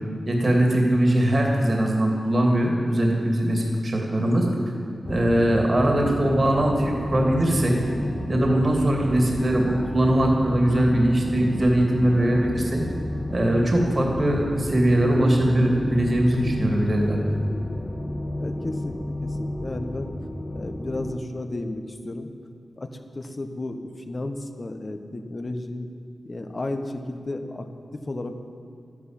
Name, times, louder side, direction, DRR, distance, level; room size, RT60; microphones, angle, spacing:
voice 1, 0.3-4.5 5.1-7.8 8.3-12.8 13.3-17.4, right 1 dB, 40° right, 0 dB, 2.7 m, -21 dB
sound 1, 5.0-21.1, left 1 dB, 20° left, 0.7 m, -31 dB
voice 2, 18.4-18.9 19.2-20.1 20.5-22.3 22.8-25.9 26.2-27.7 27.9-28.5, left 2 dB, 35° left, 6 dB, 1.2 m, -33 dB
13.0 x 11.0 x 9.0 m, 2.6 s
wide cardioid pair, 105°, 0 cm